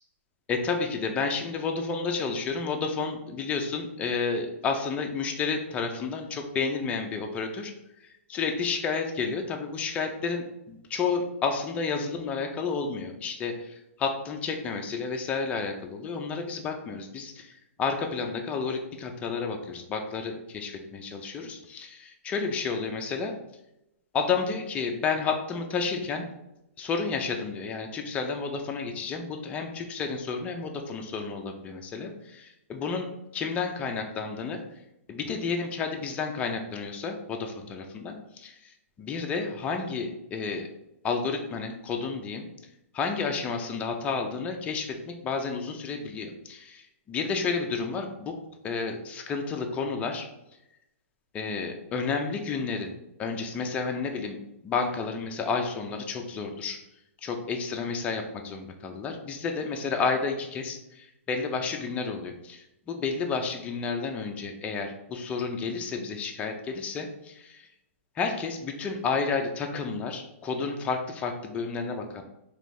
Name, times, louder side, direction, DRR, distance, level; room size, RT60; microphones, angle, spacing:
voice 1, 0.5-7.7 8.3-17.5 17.8-23.3 24.1-26.3 26.8-34.6 35.1-38.6 39.0-40.7 41.0-42.5 42.9-46.8 47.1-48.4 48.6-50.3 51.3-52.9 53.2-54.4 54.6-56.8 57.2-67.6 68.2-72.2, left 5 dB, 15° left, 3 dB, 0.5 m, -31 dB
3.8 x 3.0 x 3.3 m, 0.88 s
hypercardioid pair, 145°, 8 cm